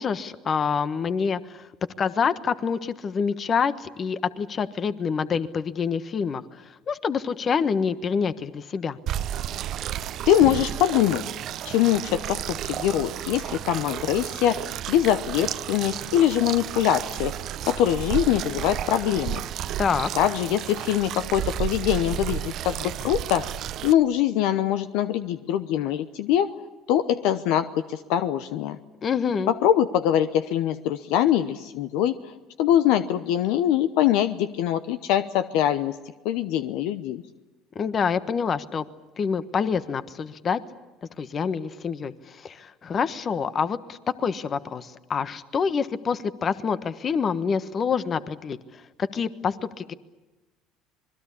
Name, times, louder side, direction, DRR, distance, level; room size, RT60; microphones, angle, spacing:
voice 1, 0.0-1.7 2.0-6.4 6.9-9.0 19.8-20.1 29.0-29.5 37.7-38.8 39.2-40.6 41.2-48.6 49.0-49.9, left 6 dB, 40° left, 13 dB, 1.3 m, -26 dB
sound 1, 9.1-23.9, right 11 dB, 55° right, 0.8 m, -32 dB
voice 2, 10.3-11.2 11.6-17.3 17.6-19.4 20.1-23.5 23.8-26.5 26.9-28.8 29.5-32.3 32.6-35.9 36.2-37.2, left 11 dB, 70° left, 12 dB, 0.9 m, -23 dB
26.0 x 21.5 x 8.5 m, 1.1 s
hypercardioid pair, 80°, 0 cm